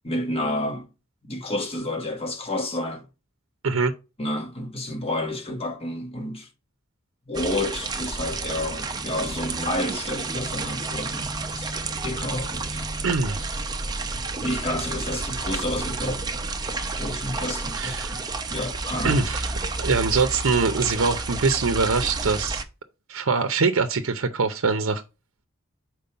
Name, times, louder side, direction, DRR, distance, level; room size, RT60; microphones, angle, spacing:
voice 1, 0.0-0.9 1.2-3.0 4.2-6.5 7.3-11.7 12.0-12.8 14.1-16.3 17.0-19.3, left 1 dB, 30° left, 1.4 m, -30 dB
sound 1, 7.3-22.6, right 3 dB, 20° right, 0.7 m, -30 dB
voice 2, 13.0-13.5 17.8-18.2 19.0-19.5 19.8-22.6 23.1-25.0, right 4 dB, 75° right, 0.7 m, -23 dB
5.3 x 4.7 x 5.6 m
head